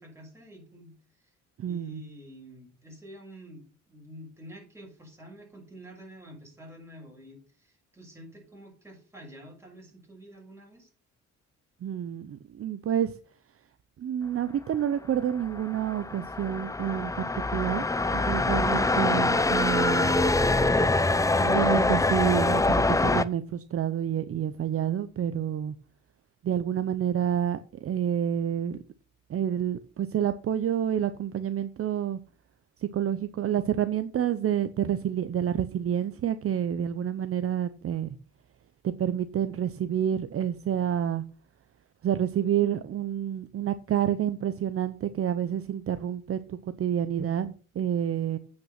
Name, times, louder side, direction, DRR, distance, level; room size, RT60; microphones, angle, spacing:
voice 1, 0.0-1.3 1.7-10.9, equal, 10° right, 6.1 m, -48 dB
voice 2, 1.6-2.0 11.8-13.1 14.0-17.8 18.1-20.2 21.4-25.7 26.4-28.8 29.3-32.2 32.8-38.2 38.8-41.2 42.0-48.4, right 9 dB, 50° right, 0.7 m, -28 dB
sound 1, 15.3-23.2, left 2 dB, 10° left, 0.6 m, -24 dB
8.7 x 6.1 x 5.9 m
cardioid pair, 90°, 30 cm